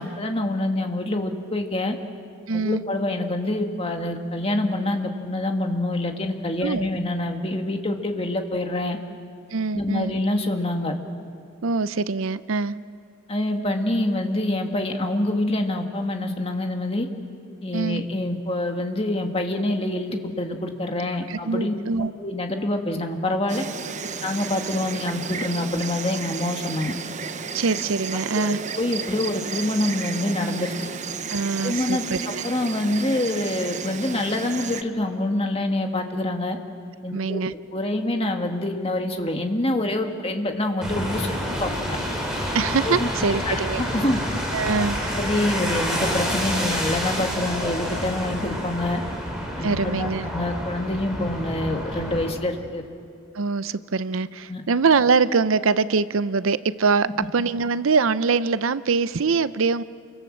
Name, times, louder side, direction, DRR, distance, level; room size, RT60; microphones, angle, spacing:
voice 1, 0.0-2.0 2.5-9.0 9.7-10.9 13.3-17.1 17.6-21.7 22.2-23.6 24.2-26.9 28.3-30.7 31.6-36.6 37.0-37.4 37.7-42.0 42.8-43.1 43.5-44.2 45.1-49.0 49.6-50.1 50.3-52.8 54.5-54.6, left 1 dB, 25° left, 4 dB, 1.8 m, -26 dB
voice 2, 2.5-2.8 6.6-6.9 9.5-10.1 11.6-12.8 17.7-18.0 21.3-22.1 27.5-28.6 31.3-32.4 37.1-37.5 42.5-43.8 44.5-45.2 49.6-50.3 53.3-59.8, right 4 dB, 70° right, 15 dB, 0.6 m, -23 dB
Insect, 23.5-34.8, right 5 dB, 35° right, 0.7 m, -33 dB
Car Pass Wet Road, 40.8-52.3, equal, 5° right, 4.8 m, -28 dB
29.0 x 24.5 x 7.4 m, 2.3 s
head